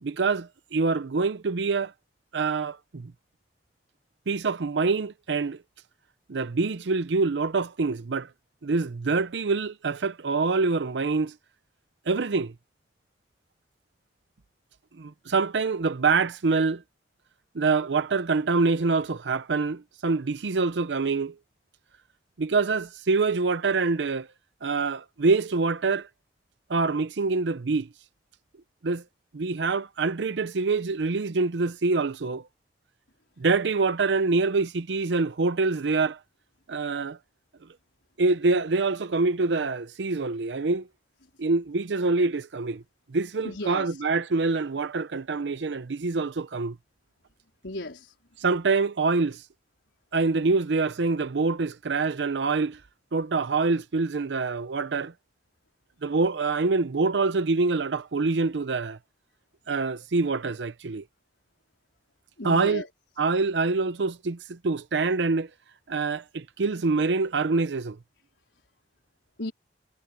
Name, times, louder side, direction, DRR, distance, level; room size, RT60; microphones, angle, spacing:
voice 1, 0.0-1.9 2.3-3.1 4.3-5.6 6.3-8.3 8.6-11.3 12.1-12.5 15.0-16.8 17.5-21.4 22.4-24.3 24.6-26.1 26.7-27.9 28.8-29.0 29.3-32.4 33.4-36.2 36.7-37.2 38.2-40.9 41.4-42.8 43.1-46.8 48.4-49.4 50.1-52.8 53.1-55.1 56.0-59.0 59.7-61.0 62.4-62.8 63.2-65.5 65.9-68.0, right 4 dB, 80° right, 0.6 m, -25 dB
voice 2, 43.4-44.0 47.6-48.2 62.4-62.9 69.4-69.5, left 2 dB, 85° left, 4.3 m, -35 dB
head